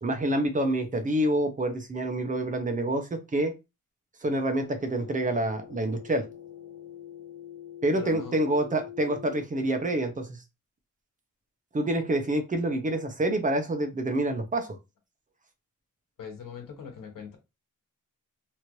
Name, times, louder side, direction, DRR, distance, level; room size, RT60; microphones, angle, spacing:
voice 1, 0.0-3.5 4.2-6.3 7.8-10.4 11.7-14.8, right 1 dB, 25° right, 0.6 m, -27 dB
sound 1, 4.6-9.4, left 10 dB, 40° left, 0.6 m, -45 dB
voice 2, 7.9-8.4 16.2-17.4, left 6 dB, 80° left, 1.1 m, -41 dB
3.0 x 2.5 x 3.0 m
wide cardioid pair, 155°, 32 cm